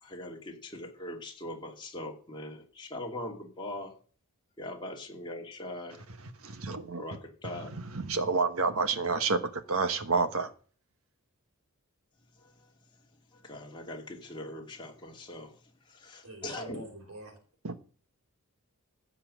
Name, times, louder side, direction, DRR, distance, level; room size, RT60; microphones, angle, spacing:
voice 1, 0.0-4.0 4.6-6.0 7.0-7.7 12.4-12.5 13.3-15.5 15.9-16.8, left 1 dB, 20° left, 2.8 m, -41 dB
voice 2, 6.4-7.0 7.7-9.4 9.7-10.5 17.6-17.7, right 4 dB, 70° right, 1.4 m, -29 dB
voice 3, 16.2-17.4, right 2 dB, 85° right, 4.1 m, -45 dB
15.5 x 5.8 x 9.0 m
head